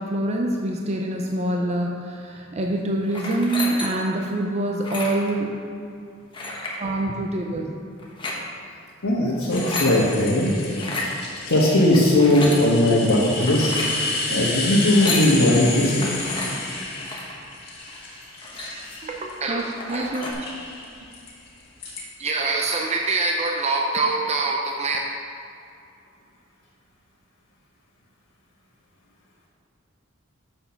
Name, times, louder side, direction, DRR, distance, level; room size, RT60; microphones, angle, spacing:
voice 1, 0.0-5.6 6.8-7.8 19.0-20.5 22.2-25.0, right 2 dB, 35° right, 1 dB, 0.6 m, -25 dB
sound 1, 3.1-4.2 4.7-5.3 6.3-6.8 8.0-8.4 9.3-10.0 10.7-11.1 11.9-12.6 13.4-14.0 14.8-15.3 16.0-16.5 17.0-17.3 17.9-18.0 18.2-19.1 19.5-19.6 19.8-20.3, left 2 dB, 25° left, 1.2 m, -31 dB
voice 2, 9.0-10.5 11.5-13.7 14.3-16.1, left 1 dB, 90° left, -7 dB, 1.5 m, -18 dB
sound 2, 9.5-19.7 20.2-22.0, left 3 dB, 50° left, 1.7 m, -31 dB
6.9 x 6.0 x 5.7 m, 2.6 s
head